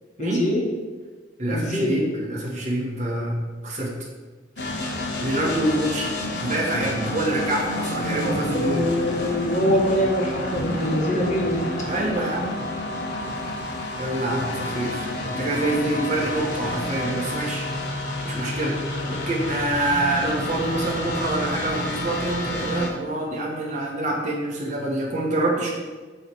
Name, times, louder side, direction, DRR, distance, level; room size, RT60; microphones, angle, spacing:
voice 1, 0.2-0.6 1.5-2.1 7.7-11.7 19.0-19.3, equal, 40° left, -2 dB, 1.4 m, -24 dB
voice 2, 1.4-3.9 5.2-6.1 6.4-8.9 11.8-12.5 14.0-17.7 18.2-18.8 19.3-25.7, right 1 dB, 40° right, -3 dB, 1.5 m, -26 dB
sound 1, 4.6-22.9, left 1 dB, 65° left, 1.1 m, -30 dB
8.4 x 3.3 x 6.3 m, 1.4 s
head